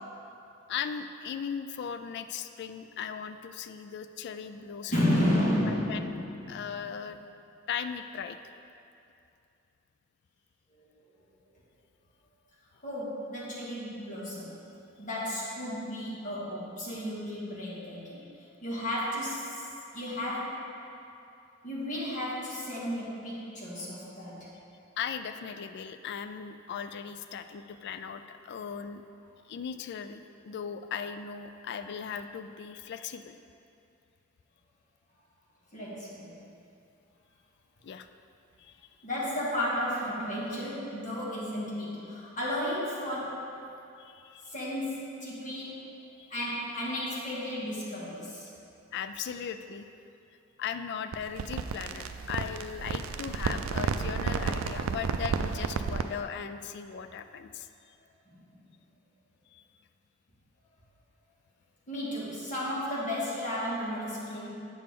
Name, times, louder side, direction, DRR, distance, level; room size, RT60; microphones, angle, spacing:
voice 1, 0.7-5.1 5.7-6.2 6.5-7.2 7.7-8.4 25.0-29.0 29.5-33.4 37.8-38.1 38.6-38.8 44.0-44.5 46.2-46.3 48.9-49.9 50.6-57.7 59.5-59.6, left 7 dB, 55° left, 10 dB, 0.3 m, -38 dB
voice 2, 4.9-6.8 12.8-14.6 15.0-18.3 18.6-19.7 19.9-20.7 21.6-24.5 35.7-36.4 39.0-43.5 44.5-45.9 46.3-48.5 58.3-58.6 61.9-64.5, left 1 dB, 40° left, -7 dB, 1.8 m, -33 dB
sound 1, 51.1-56.2, right 5 dB, 80° right, 0.4 m, -32 dB
8.4 x 6.7 x 3.7 m, 2.6 s
head